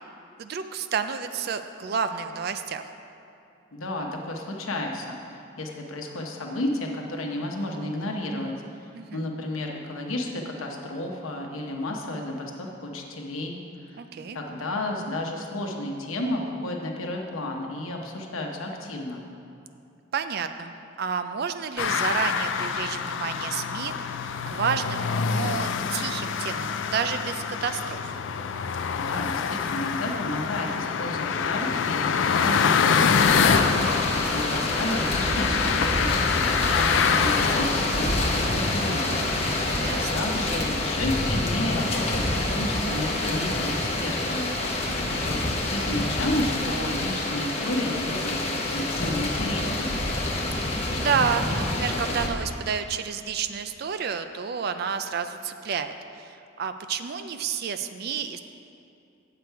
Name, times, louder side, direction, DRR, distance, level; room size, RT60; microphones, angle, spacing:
voice 1, 0.4-2.9 8.9-9.3 14.0-14.4 20.1-28.1 39.8-40.3 44.9-45.3 50.6-58.4, right 6 dB, 50° right, 9 dB, 0.4 m, -30 dB
voice 2, 3.7-8.5 8.8-13.6 13.9-14.0 14.3-19.2 28.9-36.1 36.7-39.3 40.1-44.5 45.2-45.4 45.7-50.0, left 1 dB, 85° left, 1 dB, 0.9 m, -32 dB
sound 1, 21.8-40.1, left 6 dB, 65° left, 0.3 m, -26 dB
sound 2, 33.1-52.3, left 2 dB, 30° left, 0.8 m, -27 dB
8.1 x 6.8 x 4.6 m, 2.6 s
head